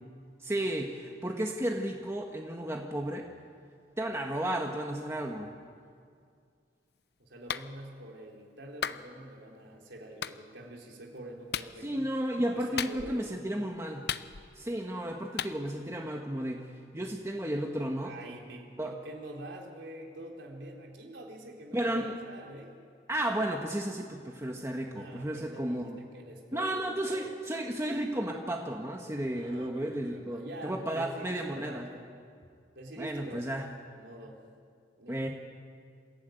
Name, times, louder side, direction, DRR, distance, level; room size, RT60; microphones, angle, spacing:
voice 1, 0.4-3.3 4.0-5.5 11.8-14.1 14.5-16.7 16.9-18.1 18.8-18.9 21.7-22.2 23.1-26.0 26.5-31.9 33.0-33.6 35.1-35.3, right 1 dB, 15° right, 1 dB, 1.5 m, -33 dB
voice 2, 7.2-12.1 12.5-13.7 18.0-22.8 24.9-27.5 29.3-32.0 32.8-33.6 33.9-34.4 35.0-35.3, right 1 dB, 80° right, -1 dB, 3.8 m, -46 dB
Clapping, 7.5-7.7 8.8-9.0 10.2-10.4 11.5-11.7 12.8-13.2 14.1-14.6 15.4-15.6, left 8 dB, 60° left, 0.7 m, -34 dB
29.0 x 16.0 x 9.2 m, 2.2 s
head